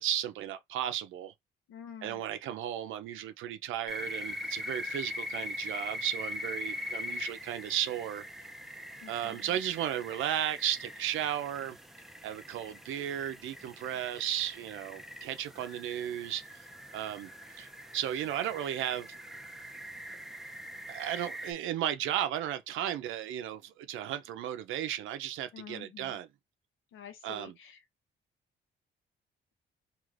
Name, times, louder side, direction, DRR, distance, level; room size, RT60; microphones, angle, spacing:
voice 1, 0.0-1.3 2.0-8.4 9.1-11.8 12.2-16.4 16.9-17.3 17.6-19.2 20.9-26.3 27.2-27.5, right 11 dB, 85° right, 0.5 m, -34 dB
voice 2, 1.7-2.2 9.0-9.5 25.5-26.2 26.9-27.8, left 7 dB, 85° left, 0.8 m, -48 dB
sound 1, 3.9-21.5, left 1 dB, ahead, 0.5 m, -42 dB
3.2 x 2.5 x 2.5 m
cardioid pair, 90°, 20 cm